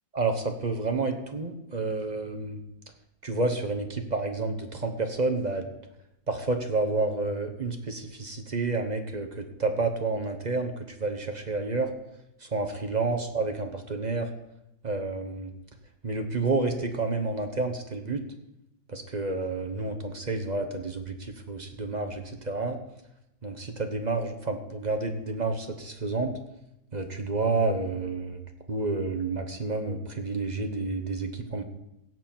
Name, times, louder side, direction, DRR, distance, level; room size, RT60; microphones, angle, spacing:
voice 1, 0.1-2.6 3.2-5.7 6.3-11.9 12.4-14.3 14.8-15.5 16.0-18.2 18.9-22.8 23.4-26.4 26.9-28.4 28.7-31.6, right 3 dB, 35° right, 5 dB, 0.7 m, -30 dB
17.0 x 7.6 x 4.4 m, 0.85 s
omnidirectional pair, 2.1 m